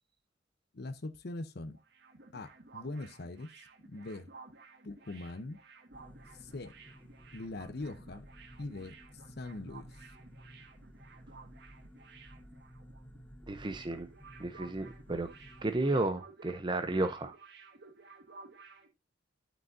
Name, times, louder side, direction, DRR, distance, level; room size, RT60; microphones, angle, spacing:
voice 1, 0.7-1.7 2.3-4.3 4.8-5.6 6.3-6.8 7.3-8.3 8.6-10.1, left 2 dB, 55° left, 0.7 m, -42 dB
sound 1, 1.6-13.2 13.4-13.6 13.9-18.9, right 4 dB, 60° right, 1.8 m, -55 dB
sound 2, 5.9-15.8, equal, 10° left, 1.1 m, -54 dB
voice 2, 13.5-14.1 14.4-15.3 15.6-17.4, right 2 dB, 25° right, 0.6 m, -32 dB
11.5 x 6.2 x 2.6 m
head